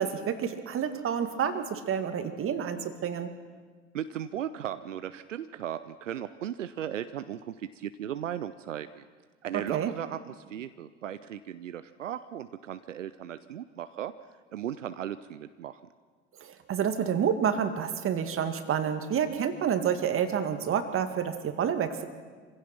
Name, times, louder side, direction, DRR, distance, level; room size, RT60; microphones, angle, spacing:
voice 1, 0.0-3.3 9.5-9.9 16.4-22.0, right 8 dB, 35° right, 8 dB, 2.0 m, -29 dB
voice 2, 3.9-9.1 9.4-14.1 14.5-15.8, right 10 dB, 80° right, 12 dB, 0.6 m, -36 dB
26.5 x 16.0 x 6.0 m, 1.5 s
figure-of-eight pair, 70°, 37 cm